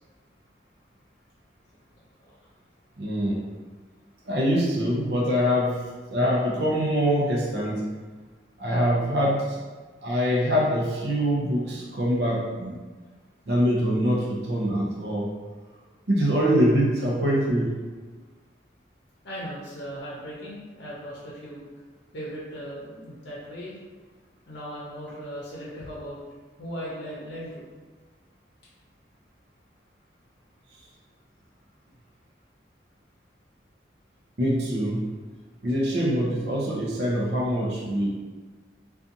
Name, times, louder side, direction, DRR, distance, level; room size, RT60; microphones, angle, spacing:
voice 1, 3.0-3.5 4.2-7.8 8.6-9.6 10.0-12.8 13.5-15.3 16.1-17.8 34.4-35.1 35.6-38.1, equal, 60° right, -4 dB, 0.5 m, -24 dB
voice 2, 19.2-21.6 22.1-23.8 24.5-26.2 26.6-27.6, equal, 70° left, -6 dB, 0.6 m, -37 dB
2.5 x 2.3 x 2.6 m, 1.4 s
head